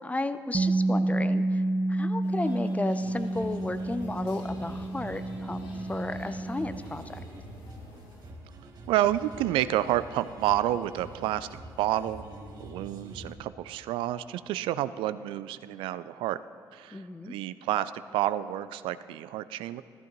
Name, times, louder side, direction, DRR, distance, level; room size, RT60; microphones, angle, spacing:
voice 1, 0.0-1.6 1.9-7.2 16.9-17.3, left 2 dB, 15° left, 12 dB, 0.6 m, -34 dB
Bass guitar, 0.5-6.8, right 2 dB, 25° right, 0.6 m, -29 dB
sound 1, 2.2-8.3, left 2 dB, 75° left, 1.5 m, -53 dB
sound 2, 3.0-13.4, right 2 dB, 50° right, 1.6 m, -46 dB
voice 2, 8.9-11.5 11.8-12.3 12.6-16.4 16.7-19.8, right 13 dB, 75° right, 14 dB, 0.4 m, -29 dB
14.5 x 13.5 x 3.0 m, 2.5 s
hypercardioid pair, 55°, 9 cm